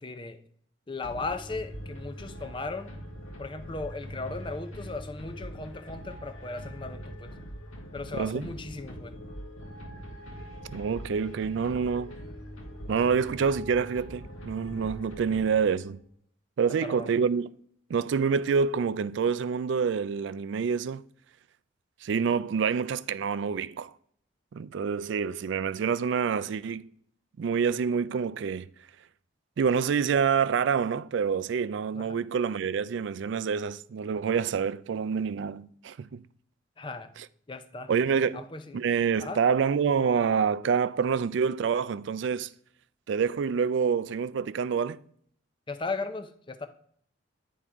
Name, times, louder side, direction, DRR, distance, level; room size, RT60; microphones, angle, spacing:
voice 1, 0.0-0.4 0.9-2.9 3.4-7.3 7.9-9.1 15.3-15.4 16.8-17.2 31.9-32.2 36.8-37.1 37.5-37.9 38.3-38.8 39.2-39.4 45.7-46.7, left 3 dB, 25° left, 0.5 m, -37 dB
sound 1, 1.0-16.1, equal, 85° left, 1.7 m, -42 dB
voice 2, 8.1-8.5 10.7-12.2 12.9-16.0 16.6-17.5 17.9-21.0 22.0-23.9 24.5-26.9 27.4-28.7 29.6-36.2 37.9-38.4 38.7-42.5 43.1-45.0, right 6 dB, 65° right, 0.3 m, -27 dB
9.8 x 3.7 x 4.5 m
head